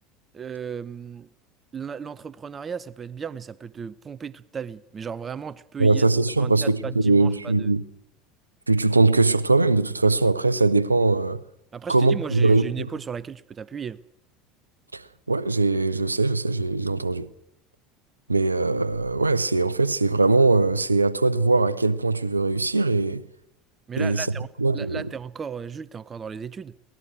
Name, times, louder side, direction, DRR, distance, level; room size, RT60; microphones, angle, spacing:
voice 1, 0.3-1.3 1.7-6.0 6.4-7.7 11.7-14.0 23.9-24.5 24.7-26.7, right 6 dB, 30° right, 0.7 m, -35 dB
voice 2, 5.8-7.8 8.7-11.4 11.9-12.7 14.9-15.0 15.3-17.3 18.3-23.3 24.0-24.3 24.6-25.0, right 3 dB, 90° right, 0.7 m, -21 dB
22.5 x 18.5 x 6.2 m
figure-of-eight pair, 70°, 0 cm